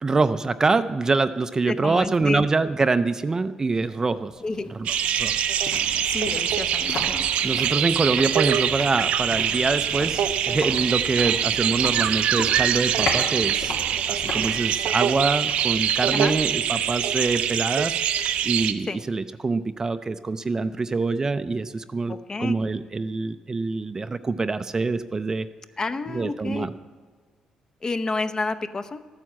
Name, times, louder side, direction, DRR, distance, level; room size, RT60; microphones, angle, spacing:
voice 1, 0.0-4.3 4.7-4.9 5.2-5.4 7.4-13.7 14.1-18.0 18.4-25.5 26.1-26.7, right 3 dB, 25° right, 11 dB, 0.4 m, -25 dB
voice 2, 1.7-2.4 4.4-4.7 6.1-7.3 16.1-16.3 18.9-19.0 22.1-22.5 25.8-26.7 27.8-29.0, left 3 dB, 30° left, 10 dB, 0.7 m, -29 dB
sound 1, 3.9-17.0 17.3-17.4, left 2 dB, 85° left, 2.9 m, -37 dB
sound 2, 4.9-18.7, right 9 dB, 85° right, 0.7 m, -24 dB
13.0 x 9.3 x 7.4 m, 1.5 s
cardioid pair, 95°, 2 cm